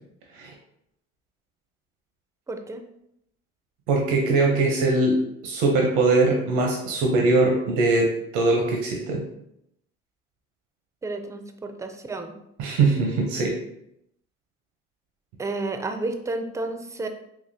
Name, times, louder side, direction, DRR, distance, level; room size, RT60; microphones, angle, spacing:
voice 1, 2.5-2.8 11.0-12.3 15.4-17.1, right 2 dB, 10° right, 6 dB, 0.4 m, -31 dB
voice 2, 3.9-5.2 5.4-8.1 8.3-9.2 12.6-13.5, right 3 dB, 90° right, 0 dB, 0.7 m, -21 dB
4.0 x 2.8 x 2.7 m, 0.78 s
supercardioid pair, 85°, 30 cm